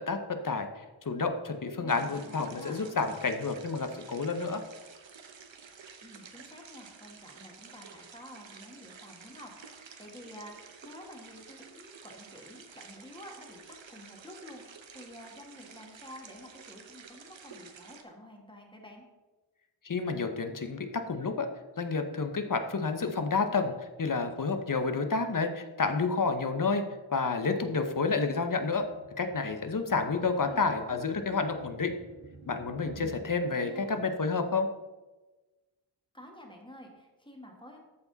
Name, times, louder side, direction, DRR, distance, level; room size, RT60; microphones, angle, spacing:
voice 1, 0.0-4.6 19.8-21.5 21.8-26.8 27.1-28.9 29.2-31.9 32.5-34.7, left 4 dB, 45° left, 7 dB, 0.9 m, -30 dB
voice 2, 1.8-2.8 6.0-19.1 30.3-31.1 33.1-34.0 36.1-37.8, left 1 dB, 10° left, 1 dB, 1.7 m, -50 dB
sound 1, 1.9-18.0, right 6 dB, 70° right, 0.9 m, -51 dB
sound 2, 28.0-33.2, right 4 dB, 90° right, 1.4 m, -52 dB
13.5 x 4.8 x 4.0 m, 1.2 s
wide cardioid pair, 90°, 47 cm